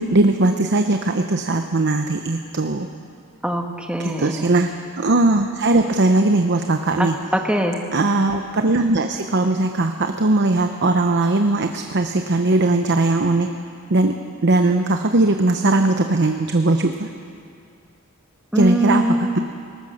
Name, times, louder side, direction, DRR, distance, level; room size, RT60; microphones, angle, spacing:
voice 1, 0.0-2.9 4.0-7.2 7.9-13.5 13.9-14.2 14.4-17.1 18.5-19.0 19.3-19.4, right 2 dB, 55° right, 6 dB, 0.9 m, -19 dB
voice 2, 3.4-4.5 7.0-7.8 18.5-19.4, right 1 dB, 5° right, 3 dB, 1.5 m, -22 dB
21.5 x 19.5 x 6.5 m, 2.3 s
head